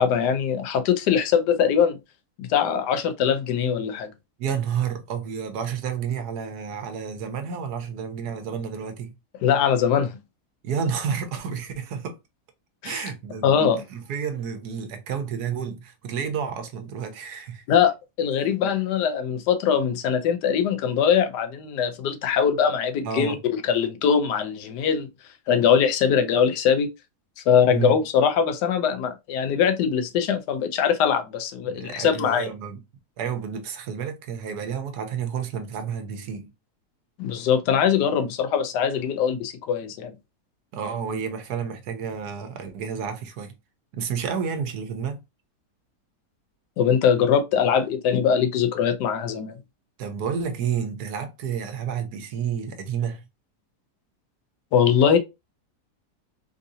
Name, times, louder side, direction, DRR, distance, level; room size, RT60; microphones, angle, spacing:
voice 1, 0.0-2.0 2.4-4.1 9.4-10.2 12.8-13.1 13.4-13.8 17.7-17.9 18.2-25.1 25.5-26.9 27.4-32.5 37.2-40.1 46.8-49.6 54.7-55.2, left 7 dB, 85° left, 1.2 m, -22 dB
voice 2, 4.4-9.1 10.6-12.2 12.8-13.5 13.9-17.6 23.0-23.4 27.7-28.0 31.6-32.8 33.2-36.5 40.7-43.5 43.9-45.2 50.0-53.2, right 7 dB, 75° right, 1.2 m, -30 dB
3.7 x 2.7 x 2.6 m
omnidirectional pair, 1.7 m